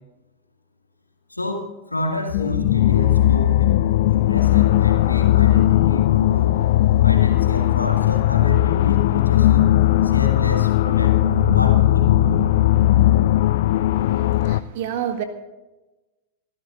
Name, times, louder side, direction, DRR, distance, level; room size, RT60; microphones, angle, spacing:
voice 1, 1.3-3.8 4.1-6.5 7.0-9.7 10.0-12.7, left 1 dB, 85° left, 2 dB, 2.3 m, -29 dB
sound 1, 2.3-14.6, left 14 dB, 55° left, 0.5 m, -17 dB
voice 2, 13.9-15.2, right 10 dB, 50° right, 8 dB, 1.6 m, -30 dB
25.5 x 13.0 x 2.6 m, 1.1 s
figure-of-eight pair, 90°, 0 cm